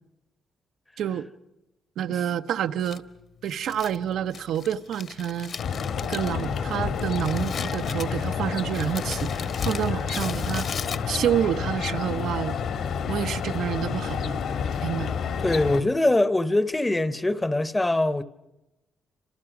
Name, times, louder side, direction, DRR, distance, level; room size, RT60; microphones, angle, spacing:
voice 1, 1.0-1.3 2.0-3.0 3.4-5.5 6.0-10.7 11.1-12.6 13.1-14.4 14.8-15.1, right 9 dB, 80° right, 0.9 m, -28 dB
Crumpling crinkling, 2.8-11.4, left 6 dB, 45° left, 1.2 m, -39 dB
sound 1, 5.6-15.8, left 6 dB, 65° left, 2.0 m, -29 dB
voice 2, 15.4-18.2, left 2 dB, 10° left, 0.8 m, -23 dB
29.0 x 27.0 x 6.0 m
cardioid pair, 165°, 0 cm